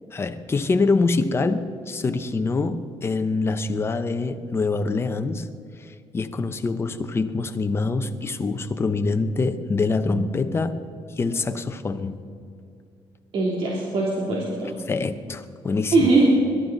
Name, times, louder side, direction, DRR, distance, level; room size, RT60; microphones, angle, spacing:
voice 1, 0.1-5.5 6.1-10.8 11.2-12.2 14.9-16.1, left 3 dB, 25° left, 8 dB, 0.8 m, -25 dB
voice 2, 13.3-14.7 15.9-16.3, right 3 dB, 65° right, -4 dB, 3.0 m, -21 dB
23.0 x 12.5 x 4.0 m, 2.4 s
cardioid pair, 135°, 10 cm